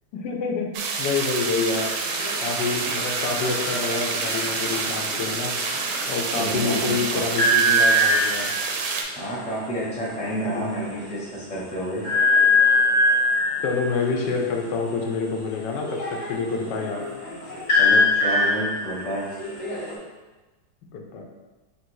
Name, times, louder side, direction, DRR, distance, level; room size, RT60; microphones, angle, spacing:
voice 1, 0.1-1.9 2.4-5.6 6.1-8.5 10.4-10.7 13.6-17.0 20.9-21.3, left 4 dB, 85° left, 2 dB, 1.3 m, -27 dB
sound 1, 0.7-9.0, right 4 dB, 80° right, 1.1 m, -28 dB
sound 2, 1.7-6.1 7.4-8.6 9.8-9.9 10.2-10.4 10.8-10.9 12.0-13.7 15.8-19.9, left 1 dB, 50° left, 1.3 m, -22 dB
voice 2, 6.3-7.3 9.2-12.0 17.7-19.3, equal, 5° left, -7 dB, 0.6 m, -30 dB
3.9 x 2.6 x 4.5 m, 1.2 s
omnidirectional pair, 1.8 m